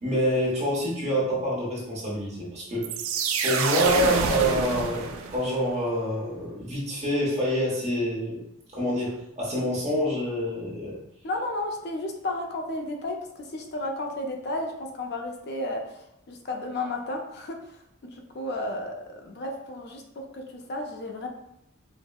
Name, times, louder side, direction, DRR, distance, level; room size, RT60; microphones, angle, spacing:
voice 1, 0.0-2.9 3.4-8.4 8.7-11.0, equal, 30° right, -5 dB, 1.0 m, -27 dB
sound 1, 2.8-5.6, right 5 dB, 80° right, 0.4 m, -27 dB
voice 2, 11.2-17.6 18.0-21.3, left 2 dB, 50° left, 3 dB, 0.4 m, -33 dB
4.4 x 2.0 x 2.3 m, 0.80 s
head